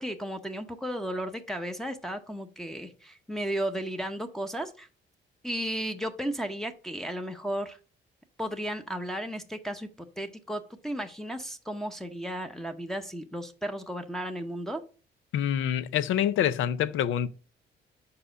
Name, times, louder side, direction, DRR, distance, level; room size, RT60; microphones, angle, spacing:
voice 1, 0.0-4.9 5.4-7.8 8.4-9.9 10.2-14.8, right 1 dB, ahead, 0.8 m, -34 dB
voice 2, 15.3-17.3, left 10 dB, 80° left, 0.5 m, -26 dB
5.0 x 4.7 x 4.9 m
cardioid pair, 90°, 20 cm